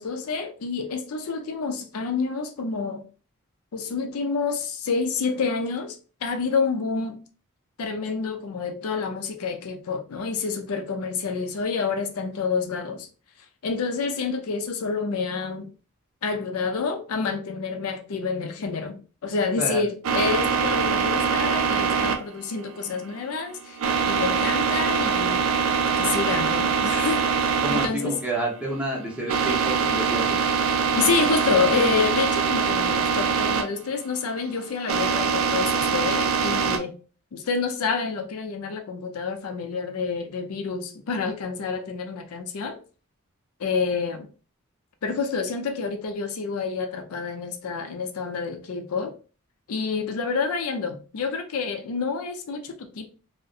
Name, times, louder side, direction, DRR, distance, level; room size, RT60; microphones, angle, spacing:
voice 1, 0.0-3.0 3.7-6.0 6.2-7.2 7.8-13.1 13.6-15.7 16.2-23.8 24.0-25.4 26.0-28.2 30.9-36.9 37.3-42.8 43.6-44.3 45.0-49.1 49.7-53.1, left 5 dB, 85° left, 0.5 m, -28 dB
sound 1, 20.0-36.8, right 6 dB, 75° right, 0.4 m, -24 dB
voice 2, 27.6-30.4 36.7-36.8, right 2 dB, 5° right, 0.7 m, -29 dB
2.6 x 2.1 x 2.3 m
head